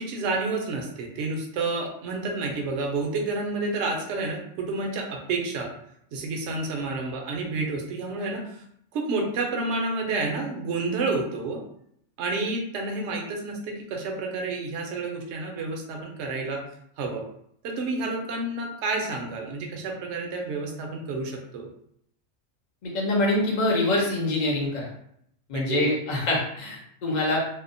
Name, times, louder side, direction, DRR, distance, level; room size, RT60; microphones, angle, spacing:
voice 1, 0.0-5.7 6.1-8.6 8.9-11.6 12.2-16.6 17.0-17.2 17.6-21.7 25.5-25.9, right 3 dB, 65° right, 1 dB, 0.8 m, -29 dB
voice 2, 22.8-24.9 25.5-27.4, left 2 dB, 45° left, -2 dB, 0.6 m, -25 dB
2.7 x 2.0 x 2.5 m, 0.71 s
omnidirectional pair, 1.4 m